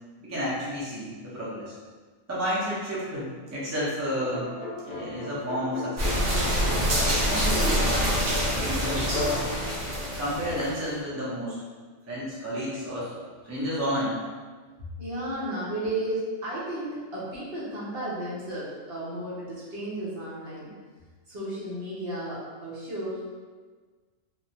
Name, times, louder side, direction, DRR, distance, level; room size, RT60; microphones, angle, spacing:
voice 1, 0.2-1.7 2.3-4.4 4.8-6.1 7.3-8.0 8.6-9.1 10.2-11.6 12.1-13.1 13.4-14.2, equal, 20° right, -8 dB, 0.4 m, -31 dB
sound 1, 4.1-10.6, left 3 dB, 75° left, 0.4 m, -35 dB
sound 2, 6.0-10.8, equal, 85° right, 1.2 m, -26 dB
voice 2, 15.0-20.7 21.3-23.3, right 1 dB, 55° right, -8 dB, 0.8 m, -33 dB
3.0 x 2.1 x 2.7 m, 1.4 s
omnidirectional pair, 1.4 m